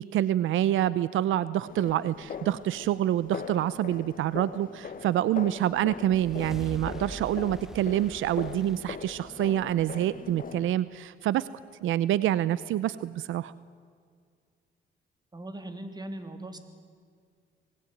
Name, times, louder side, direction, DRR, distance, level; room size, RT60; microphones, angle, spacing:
voice 1, 0.0-11.5 11.8-13.5, right 12 dB, 80° right, 17 dB, 0.7 m, -27 dB
sound 1, 1.7-10.7, left 7 dB, 45° left, 1.4 m, -41 dB
sound 2, 5.7-10.3, equal, ahead, 1.5 m, -44 dB
voice 2, 15.3-16.6, right 1 dB, 20° right, 7 dB, 3.3 m, -40 dB
27.5 x 20.0 x 9.2 m, 2.1 s
cardioid pair, 90°, 20 cm